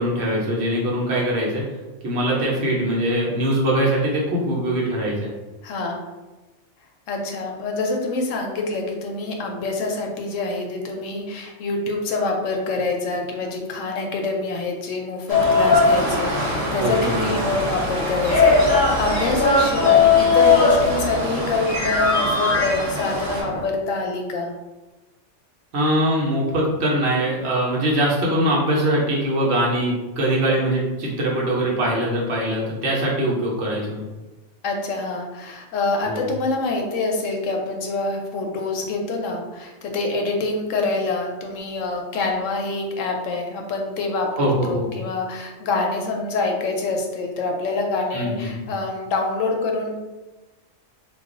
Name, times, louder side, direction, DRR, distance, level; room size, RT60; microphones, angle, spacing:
voice 1, 0.0-1.6 2.0-5.3 16.8-17.3 25.7-34.1 36.0-36.3 44.4-44.9 48.1-48.6, right 1 dB, 60° right, -4 dB, 0.9 m, -22 dB
voice 2, 5.6-6.1 7.1-24.5 34.6-50.0, left 3 dB, 85° left, 2 dB, 0.9 m, -26 dB
sound 1, 15.3-23.6, left 4 dB, 40° left, 0.8 m, -20 dB
Waves surf, 15.3-23.4, right 1 dB, 30° right, 0.4 m, -30 dB
2.3 x 2.3 x 3.6 m, 1.1 s
omnidirectional pair, 1.3 m